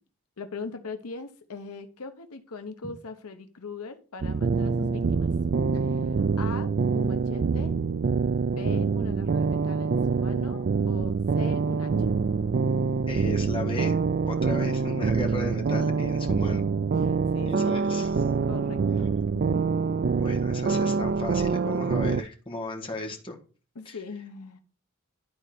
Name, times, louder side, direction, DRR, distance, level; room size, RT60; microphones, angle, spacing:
voice 1, 0.4-5.3 5.7-7.8 8.5-12.1 17.0-17.8 18.5-19.6 23.7-24.6, left 4 dB, 80° left, 0.9 m, -41 dB
sound 1, 4.2-22.2, right 5 dB, 45° right, 0.3 m, -25 dB
voice 2, 13.1-14.0 14.3-16.6 17.4-18.1 20.2-23.4 23.8-24.0, left 2 dB, 25° left, 1.6 m, -35 dB
11.5 x 4.3 x 5.1 m
head